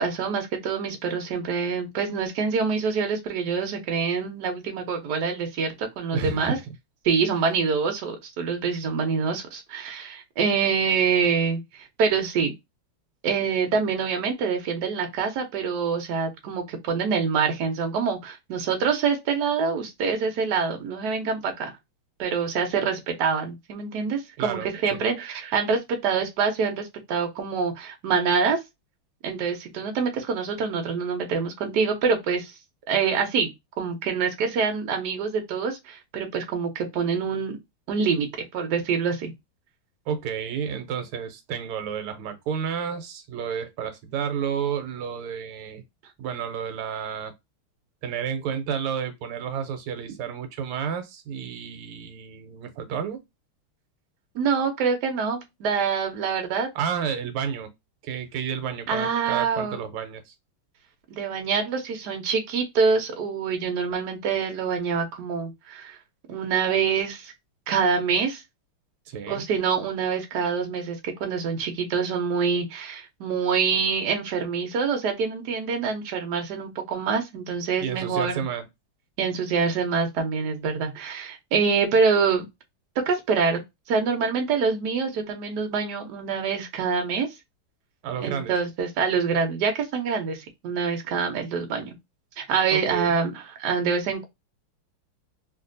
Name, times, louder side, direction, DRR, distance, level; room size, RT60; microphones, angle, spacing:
voice 1, 0.0-6.6 7.0-12.5 13.2-21.7 22.2-28.6 29.2-32.5 32.9-33.5 33.8-37.6 37.9-38.3 38.5-39.3 54.3-56.7 58.9-59.8 61.1-66.0 66.3-67.3 67.7-68.4 69.3-78.4 79.2-82.5 83.1-87.3 88.2-91.9 92.4-94.2, right 5 dB, 60° right, 1.3 m, -25 dB
voice 2, 6.1-6.7 24.4-25.0 34.4-34.5 40.1-45.8 46.2-47.3 48.0-53.2 56.7-57.7 58.0-60.3 69.1-69.4 77.8-78.7 88.0-88.5 92.7-93.2, right 7 dB, 85° right, 1.6 m, -31 dB
3.2 x 2.6 x 2.5 m
omnidirectional pair, 2.4 m